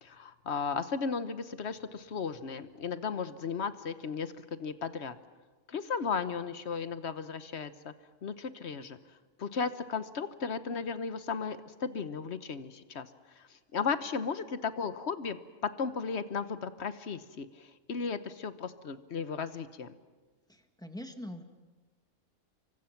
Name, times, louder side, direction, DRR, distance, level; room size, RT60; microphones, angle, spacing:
voice 1, 0.0-5.2 5.7-7.9 8.2-9.0 9.4-13.1 13.4-20.0, left 5 dB, 50° left, 12 dB, 1.2 m, -35 dB
voice 2, 20.5-21.4, left 1 dB, 5° left, 6 dB, 1.6 m, -43 dB
29.0 x 24.5 x 5.9 m, 1.3 s
omnidirectional pair, 1.5 m